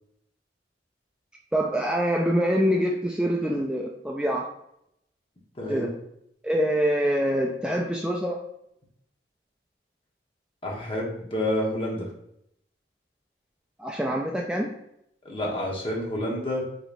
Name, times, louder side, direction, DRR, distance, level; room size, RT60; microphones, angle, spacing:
voice 1, 1.5-4.5 5.7-5.9 6.4-8.4 13.8-14.8, equal, 5° right, -1 dB, 0.3 m, -25 dB
voice 2, 5.6-5.9 10.6-12.1 15.2-16.6, left 1 dB, 30° left, -2 dB, 1.1 m, -29 dB
5.0 x 3.9 x 2.5 m, 0.77 s
head